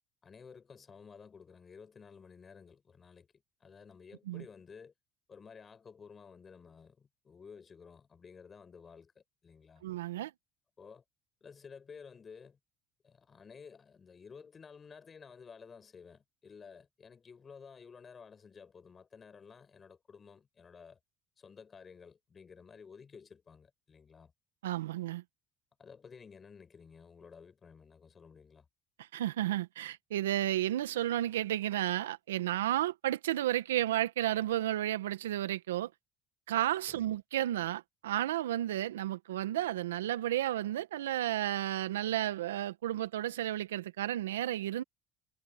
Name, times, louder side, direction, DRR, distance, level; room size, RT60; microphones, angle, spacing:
voice 1, 0.2-3.3 3.6-4.9 5.3-9.8 10.8-11.0 11.4-12.6 13.0-21.0 21.4-24.3 25.8-28.7 36.9-37.1, left 6 dB, 35° left, 6.1 m, -53 dB
voice 2, 9.8-10.3 24.6-25.2 29.1-35.9 36.5-44.8, right 13 dB, 85° right, 1.5 m, -32 dB
hypercardioid pair, 70°, 0 cm